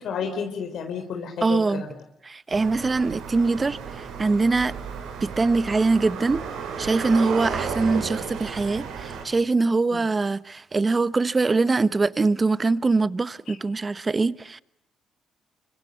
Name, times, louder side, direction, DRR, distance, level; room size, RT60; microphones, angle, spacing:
voice 1, 0.0-1.9 9.9-10.0 13.5-13.6, left 6 dB, 70° left, 4.0 m, -31 dB
voice 2, 1.4-1.8 2.3-4.8 5.2-6.4 6.8-14.6, right 3 dB, 25° right, 1.0 m, -23 dB
sound 1, 2.5-9.2, right 6 dB, 85° right, 5.9 m, -33 dB
26.0 x 25.0 x 8.2 m
cardioid pair, 90°, 0 cm